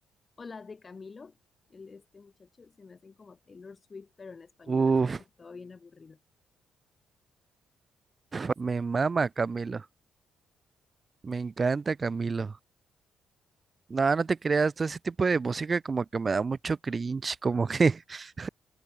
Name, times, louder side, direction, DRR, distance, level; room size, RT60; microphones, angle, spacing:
voice 1, 0.4-1.4 1.7-6.2, left 4 dB, 35° left, 1.6 m, -48 dB
voice 2, 4.7-5.2 8.3-9.8 11.2-12.5 13.9-18.5, right 4 dB, 35° right, 0.4 m, -27 dB
cardioid pair, 90°, 0 cm